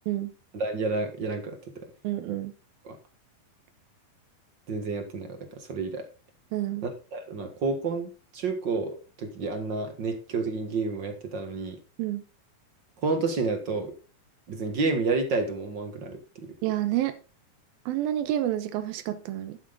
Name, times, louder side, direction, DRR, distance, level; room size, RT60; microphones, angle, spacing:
voice 1, 0.5-1.6 2.8-2.9 4.7-6.0 6.8-11.8 13.0-13.9 14.5-16.2, right 3 dB, 50° right, 1.3 m, -30 dB
voice 2, 2.0-2.5 6.5-6.9 12.0-12.2 16.6-17.2 17.9-19.6, right 13 dB, 85° right, 2.6 m, -29 dB
11.5 x 8.5 x 3.8 m
omnidirectional pair, 4.2 m